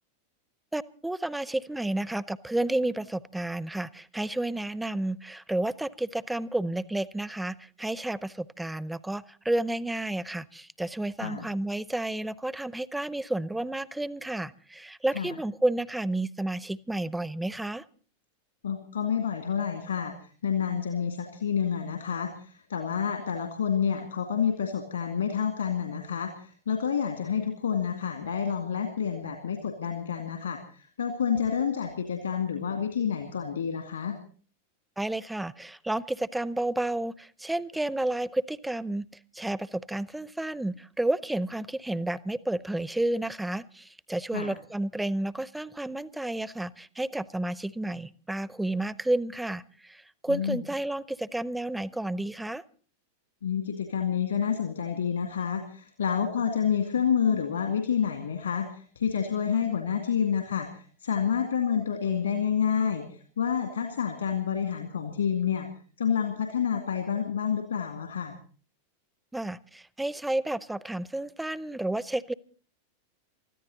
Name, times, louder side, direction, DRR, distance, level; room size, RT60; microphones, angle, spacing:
voice 1, 0.7-17.8 35.0-39.1 39.3-52.6 69.3-72.3, right 1 dB, 5° right, 20 dB, 0.7 m, -31 dB
voice 2, 18.6-20.1 20.4-34.2 44.3-44.6 50.3-50.6 53.4-65.7 66.0-68.4, left 7 dB, 70° left, 6 dB, 2.3 m, -29 dB
24.5 x 14.0 x 4.0 m, 0.41 s
figure-of-eight pair, 90°, 0 cm